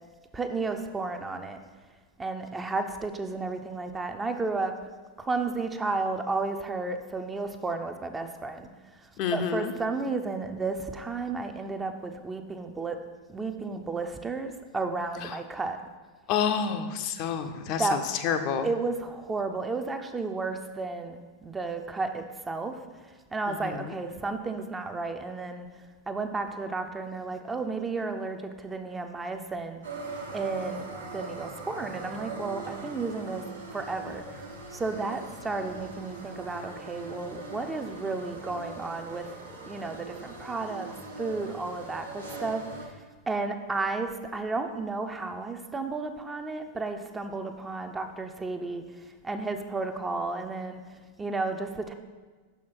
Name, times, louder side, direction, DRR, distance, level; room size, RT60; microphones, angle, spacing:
voice 1, 0.3-1.6 2.2-4.8 5.2-8.7 9.3-13.0 13.3-15.8 17.8-18.0 18.6-22.8 23.3-25.7 26.1-29.8 30.3-30.9 31.1-33.4 33.7-34.2 34.7-39.3 39.7-40.9 41.2-42.6 43.3-50.8 51.2-51.9, right 3 dB, 15° right, 6 dB, 0.5 m, -32 dB
voice 2, 9.2-9.7 16.3-17.8 18.2-18.7 23.6-23.8, left 7 dB, 40° left, 8 dB, 0.5 m, -28 dB
sound 1, 29.8-42.9, right 3 dB, 75° right, 1.2 m, -41 dB
6.0 x 5.7 x 4.5 m, 1.4 s
figure-of-eight pair, 90°, 0 cm